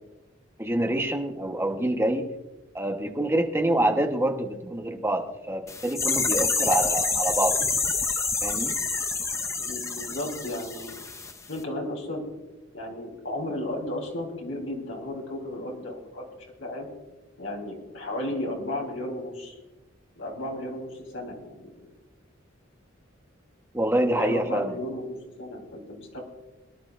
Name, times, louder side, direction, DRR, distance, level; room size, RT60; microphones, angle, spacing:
voice 1, 0.6-2.3 2.7-7.6 8.4-8.7 23.7-24.7, right 1 dB, 15° right, 3 dB, 1.1 m, -26 dB
sound 1, 5.7-11.3 11.6-11.7, left 4 dB, 15° left, 0.6 m, -27 dB
voice 2, 9.6-10.9 11.5-12.2 12.7-16.3 16.6-16.9 17.4-19.6 20.2-21.7 23.9-26.2, left 1 dB, 75° left, 0 dB, 3.8 m, -34 dB
23.0 x 11.5 x 2.5 m, 1.0 s
head